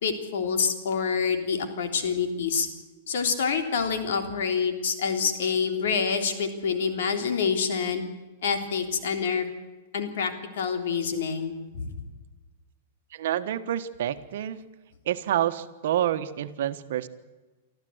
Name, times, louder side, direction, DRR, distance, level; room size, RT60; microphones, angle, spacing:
voice 1, 0.0-2.7 3.1-8.0 8.4-9.5 9.9-11.9, left 6 dB, 75° left, 6 dB, 3.4 m, -27 dB
voice 2, 13.1-14.6 15.0-17.1, right 11 dB, 70° right, 10 dB, 1.3 m, -28 dB
25.0 x 14.0 x 8.0 m, 1.2 s
supercardioid pair, 150°, 0 cm